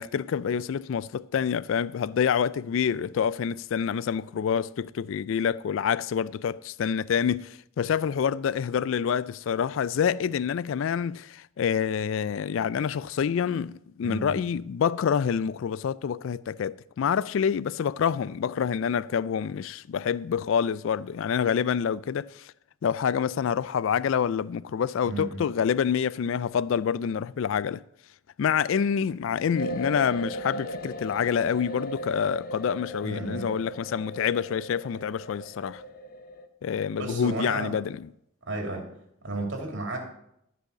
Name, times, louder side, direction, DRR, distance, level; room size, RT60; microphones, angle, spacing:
voice 1, 0.0-22.5 22.8-27.8 28.4-35.8 36.6-38.1, left 7 dB, 65° left, 0.3 m, -27 dB
voice 2, 14.0-14.4 25.0-25.4 33.0-33.5 36.9-37.7 38.5-38.9 39.2-40.0, right 2 dB, 60° right, 3.1 m, -33 dB
sound 1, 29.6-36.5, right 1 dB, 45° left, 1.0 m, -37 dB
14.0 x 5.6 x 6.7 m
head